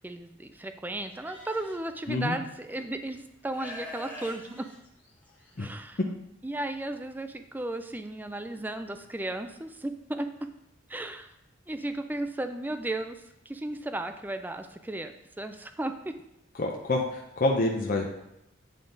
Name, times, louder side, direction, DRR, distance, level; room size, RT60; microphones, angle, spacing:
voice 1, 0.0-4.7 5.6-6.0 6.4-10.5 10.9-11.3 11.7-13.2 13.5-16.1, right 1 dB, 10° right, 7 dB, 0.4 m, -35 dB
Livestock farm animals working animals, 1.2-1.8 2.7-2.8 3.5-5.5, left 1 dB, 10° left, 1.6 m, -44 dB
voice 2, 16.5-18.1, left 2 dB, 45° left, 0 dB, 0.6 m, -27 dB
8.9 x 3.7 x 3.8 m, 0.86 s
head